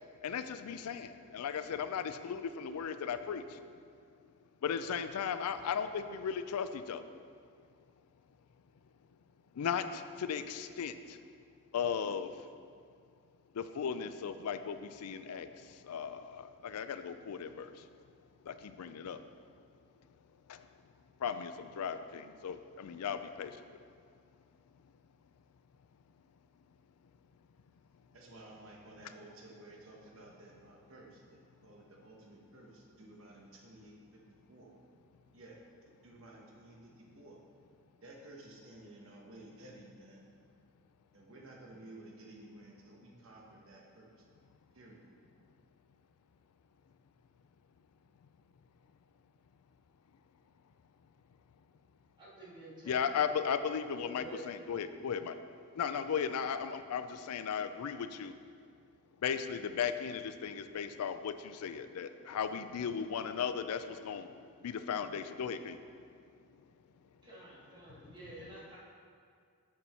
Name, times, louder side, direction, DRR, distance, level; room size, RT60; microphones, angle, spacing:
voice 1, 0.2-3.6 4.6-7.0 9.6-11.2 11.7-12.3 13.6-15.5 15.9-17.7 18.5-19.2 21.2-23.5 52.9-55.3 55.8-58.3 59.2-64.3 64.6-65.8, left 7 dB, 90° left, 10 dB, 0.4 m, -36 dB
voice 2, 28.1-33.9 34.5-34.7 35.3-35.6 36.0-37.4 38.0-40.2 41.1-44.1 44.7-45.0, right 1 dB, 65° right, -1 dB, 1.1 m, -54 dB
voice 3, 52.2-53.2 54.0-54.4 67.2-68.8, right 2 dB, 20° right, -8 dB, 1.9 m, -50 dB
7.0 x 6.6 x 4.3 m, 2.2 s
head